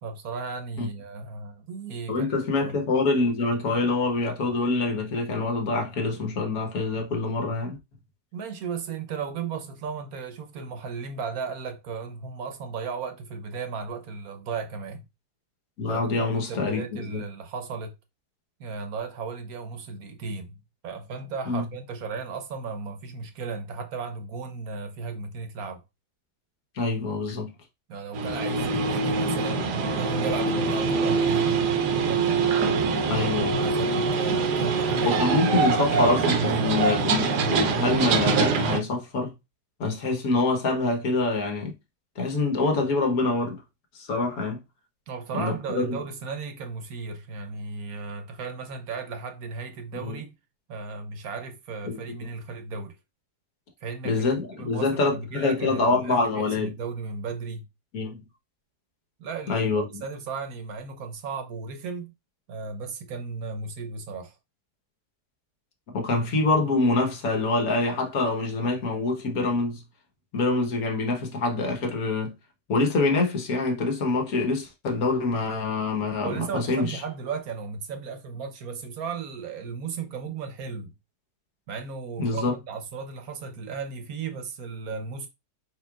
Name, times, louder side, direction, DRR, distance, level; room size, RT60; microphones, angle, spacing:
voice 1, 0.0-2.7 8.3-15.0 15.9-17.9 18.6-20.6 20.8-25.8 27.9-29.7 30.0-31.6 31.9-32.4 33.2-37.3 45.1-50.3 50.7-53.0 53.8-54.3 54.6-57.7 59.2-62.1 62.5-64.4 76.2-80.9 81.7-85.3, right 5 dB, 70° right, 1.2 m, -35 dB
voice 2, 2.1-7.8 15.8-16.8 17.1-17.2 21.5-21.6 26.7-27.5 28.6-28.7 33.1-33.6 33.9-34.0 35.0-39.3 39.8-41.7 42.2-43.6 43.9-44.6 45.3-46.0 50.0-50.2 51.8-52.0 54.0-56.7 57.9-58.2 59.5-59.9 65.9-69.8 70.3-72.3 72.7-77.0 82.2-82.5, left 3 dB, 65° left, 1.6 m, -25 dB
sound 1, 28.1-38.8, right 4 dB, 85° right, 1.4 m, -24 dB
4.8 x 4.4 x 2.4 m
omnidirectional pair, 1.7 m